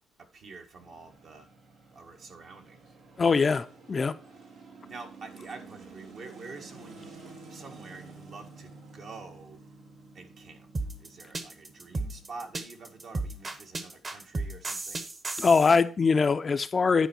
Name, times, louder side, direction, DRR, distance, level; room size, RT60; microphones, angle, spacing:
voice 1, 0.2-1.5 1.9-2.9 4.8-9.6 10.1-10.7 11.0-15.0, right 4 dB, 60° right, 3 dB, 1.7 m, -47 dB
sound 1, 0.8-15.0, right 3 dB, 80° right, 2.2 m, -51 dB
voice 2, 3.2-4.1 15.4-17.1, left 5 dB, 35° left, 10 dB, 0.5 m, -23 dB
sound 2, 10.7-15.8, right 2 dB, 35° right, 1.2 m, -34 dB
10.5 x 4.6 x 4.4 m, 0.38 s
cardioid pair, 90°, 0 cm